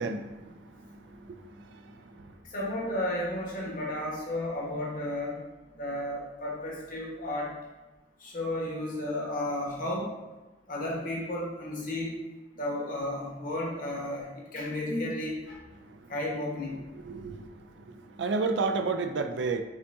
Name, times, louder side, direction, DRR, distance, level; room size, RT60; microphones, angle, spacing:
voice 1, 0.0-2.3 15.9-16.0 16.9-19.6, right 4 dB, 70° right, 7 dB, 0.4 m, -33 dB
voice 2, 2.4-5.4 5.7-7.5 8.2-10.1 10.7-12.1 12.5-15.6 16.1-16.8, left 1 dB, 50° left, -3 dB, 1.2 m, -33 dB
5.4 x 3.5 x 2.7 m, 1.1 s
head